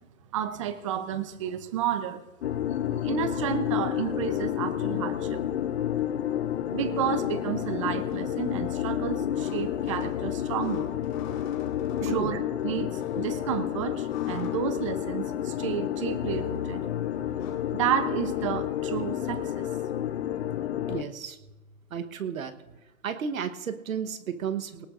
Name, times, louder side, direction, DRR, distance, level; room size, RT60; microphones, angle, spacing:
voice 1, 0.3-2.2 3.0-5.4 6.7-10.9 12.0-16.8 17.7-19.7, right 9 dB, 25° right, 12 dB, 0.6 m, -31 dB
sound 1, 2.4-21.0, left 11 dB, 50° left, 0.6 m, -30 dB
sound 2, 7.7-17.5, left 7 dB, 35° left, 2.0 m, -51 dB
voice 2, 12.0-12.3 20.8-21.4 21.9-22.8 23.0-24.9, right 7 dB, 75° right, 9 dB, 1.2 m, -33 dB
19.5 x 18.5 x 2.5 m, 1.1 s
hypercardioid pair, 150°, 42 cm